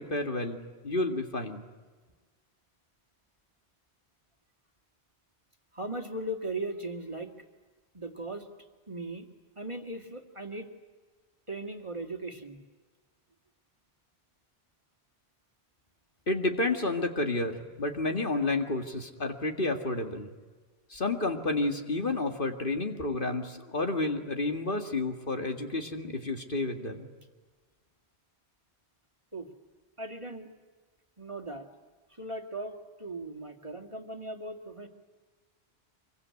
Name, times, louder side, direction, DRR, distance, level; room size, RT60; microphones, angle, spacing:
voice 1, 0.0-1.6 16.3-20.3 20.9-27.1, left 2 dB, 55° left, 4 dB, 2.3 m, -30 dB
voice 2, 5.7-7.3 7.9-8.5 8.9-9.2 9.6-10.7 11.5-12.6 29.3-29.5 30.0-30.5 31.2-31.7 32.1-34.9, right 1 dB, 30° right, 4 dB, 2.2 m, -38 dB
25.5 x 23.5 x 9.6 m, 1.3 s
omnidirectional pair, 1.1 m